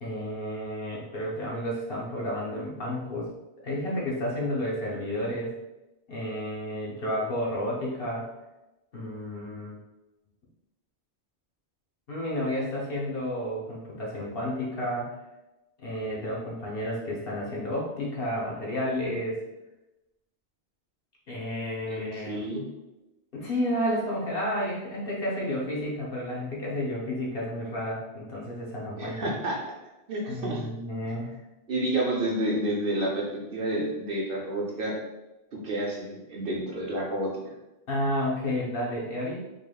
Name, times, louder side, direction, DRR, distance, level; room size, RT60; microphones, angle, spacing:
voice 1, 0.0-3.3 3.6-5.5 6.1-8.3 8.9-9.8 12.1-15.1 15.8-19.4 21.3-22.5 23.3-29.3 30.3-31.4 37.9-39.4, left 1 dB, 65° left, -4 dB, 1.1 m, -31 dB
voice 2, 21.9-22.6 29.0-29.6 30.1-30.6 31.7-35.0 35.6-37.3, right 1 dB, 60° right, -1 dB, 0.9 m, -29 dB
3.9 x 3.3 x 2.3 m, 0.98 s
omnidirectional pair, 1.1 m